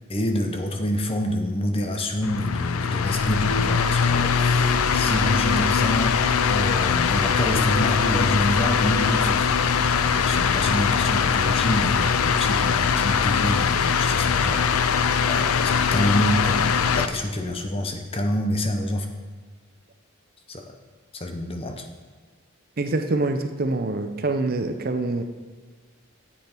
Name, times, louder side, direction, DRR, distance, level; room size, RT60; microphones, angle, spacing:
voice 1, 0.1-6.1 6.5-14.9 15.3-16.7 17.0-19.1 20.5-20.7 21.1-21.8, left 1 dB, 25° left, 5 dB, 0.7 m, -27 dB
sound 1, 2.2-17.1, left 6 dB, 85° left, 0.5 m, -21 dB
voice 2, 22.8-25.2, right 2 dB, 45° right, 7 dB, 0.6 m, -25 dB
8.4 x 7.9 x 4.5 m, 1.5 s
head